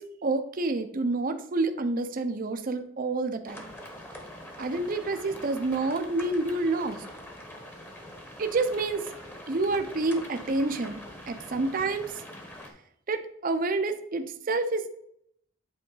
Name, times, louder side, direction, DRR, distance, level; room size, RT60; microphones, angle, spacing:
voice 1, 0.0-3.7 4.6-7.0 8.4-9.1 9.5-11.0 11.3-12.2 13.1-15.0, right 3 dB, 45° right, 8 dB, 0.5 m, -28 dB
sound 1, 3.5-12.7, left 1 dB, 10° left, 0.9 m, -44 dB
8.5 x 3.8 x 3.8 m, 0.69 s
head